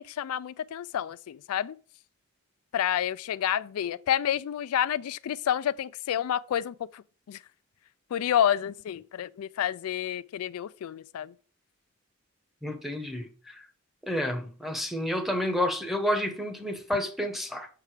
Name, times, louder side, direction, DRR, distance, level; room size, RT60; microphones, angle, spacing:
voice 1, 0.0-1.8 2.7-7.0 7.3-7.4 8.1-11.3, left 10 dB, 85° left, 0.3 m, -29 dB
voice 2, 12.6-13.6 14.1-17.7, left 1 dB, ahead, 0.9 m, -30 dB
6.7 x 4.7 x 5.0 m
head